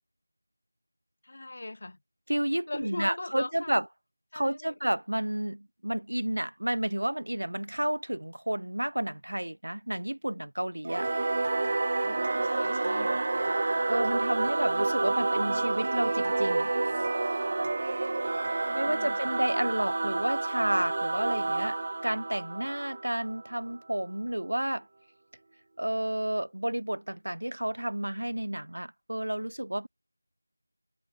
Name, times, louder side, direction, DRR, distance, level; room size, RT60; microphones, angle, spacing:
voice 1, 1.2-2.0 2.7-3.8 4.3-4.7 12.0-13.2 14.8-14.9 15.4-15.5 18.7-19.3, left 2 dB, 45° left, 3.2 m, -40 dB
voice 2, 2.3-3.9 4.3-11.1 13.9-16.7 18.7-24.9 25.8-29.9, right 1 dB, 80° right, 3.0 m, -31 dB
Singing / Musical instrument, 10.8-23.7, right 2 dB, 35° right, 0.5 m, -29 dB
figure-of-eight pair, 170°, 0 cm